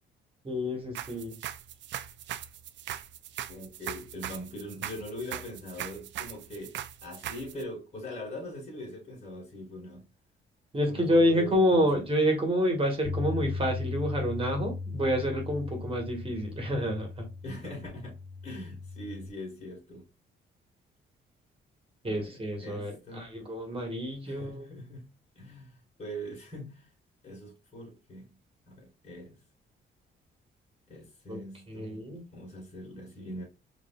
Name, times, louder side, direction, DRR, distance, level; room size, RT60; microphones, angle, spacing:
voice 1, 0.4-1.4 10.7-17.3 22.0-24.6 31.3-31.4 31.7-32.2, equal, 25° right, 1.7 m, -28 dB
sound 1, 0.9-7.6, right 11 dB, 65° right, 0.4 m, -40 dB
voice 2, 3.5-10.1 10.9-12.0 17.4-18.2 18.4-20.0 22.0-23.3 24.2-25.1 25.4-26.9 27.2-28.4 28.7-29.4 30.9-33.4, equal, 35° left, 2.2 m, -42 dB
Bass guitar, 13.0-19.3, left 4 dB, 70° left, 1.1 m, -37 dB
4.9 x 3.0 x 2.4 m
cardioid pair, 90°, 20 cm